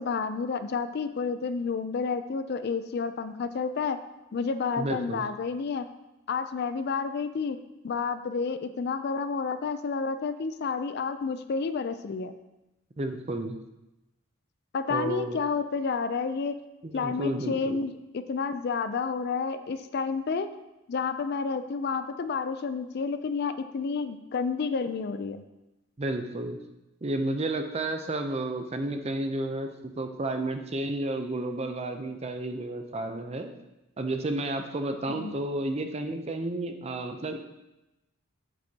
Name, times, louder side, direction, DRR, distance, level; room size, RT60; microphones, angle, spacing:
voice 1, 0.0-4.0 4.3-5.9 6.3-7.6 7.8-12.4 14.7-16.6 16.9-20.5 20.9-25.4 35.1-35.4, left 5 dB, 50° left, 10 dB, 0.4 m, -30 dB
voice 2, 4.8-5.3 13.0-13.6 14.9-15.4 16.8-17.8 26.0-26.6 27.0-29.7 30.0-33.5 34.0-37.4, right 2 dB, 30° right, 6 dB, 0.5 m, -31 dB
7.9 x 7.7 x 2.8 m, 0.97 s
head